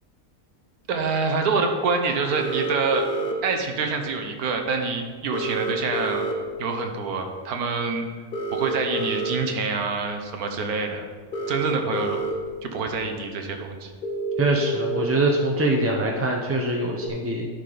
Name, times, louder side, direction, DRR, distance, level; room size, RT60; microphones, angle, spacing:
voice 1, 0.9-3.1 3.4-6.2 6.6-8.0 8.5-11.0 11.5-12.2 12.6-13.9, right 4 dB, 85° right, 4 dB, 1.4 m, -26 dB
sound 1, 2.3-3.3 5.3-6.3 8.3-9.3 11.3-12.3 12.9-13.0 14.0-15.0 17.0-17.1, right 1 dB, 45° left, 0.9 m, -28 dB
voice 2, 14.4-17.5, right 2 dB, 20° right, -1 dB, 0.4 m, -23 dB
11.0 x 5.0 x 3.9 m, 1.5 s
omnidirectional pair, 1.5 m